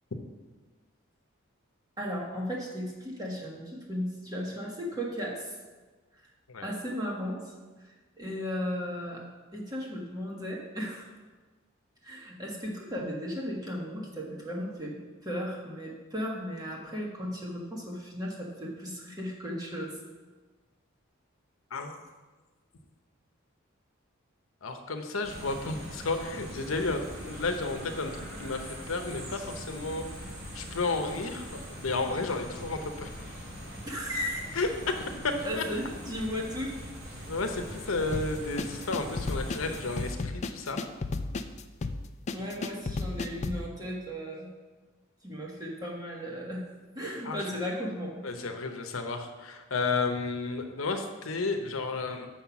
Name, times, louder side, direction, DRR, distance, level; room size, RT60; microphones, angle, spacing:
voice 1, 2.0-5.5 6.6-7.5 7.8-9.2 9.5-11.1 12.0-14.9 15.2-20.0 33.9-34.5 35.4-36.7 42.3-44.5 45.2-46.6 46.9-48.2, equal, 20° right, -2 dB, 1.4 m, -35 dB
voice 2, 24.6-33.3 34.5-35.6 37.3-40.8 42.4-42.5 47.2-47.4 48.2-52.3, left 3 dB, 85° left, 5 dB, 0.8 m, -32 dB
sound 1, 25.2-40.1, equal, 50° right, 2.5 m, -42 dB
sound 2, 38.1-43.7, left 3 dB, 35° left, 0.4 m, -33 dB
6.6 x 5.7 x 5.8 m, 1.3 s
head